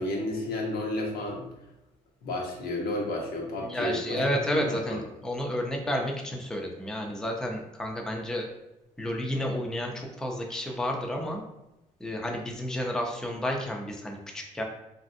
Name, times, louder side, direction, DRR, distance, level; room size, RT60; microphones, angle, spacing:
voice 1, 0.0-1.5 2.2-4.2 4.5-5.0, left 1 dB, 75° left, -1 dB, 0.8 m, -31 dB
voice 2, 3.6-8.5 9.0-11.4 12.0-14.6, equal, 5° left, 1 dB, 0.4 m, -31 dB
3.1 x 2.6 x 2.5 m, 0.93 s
cardioid pair, 120°, 15 cm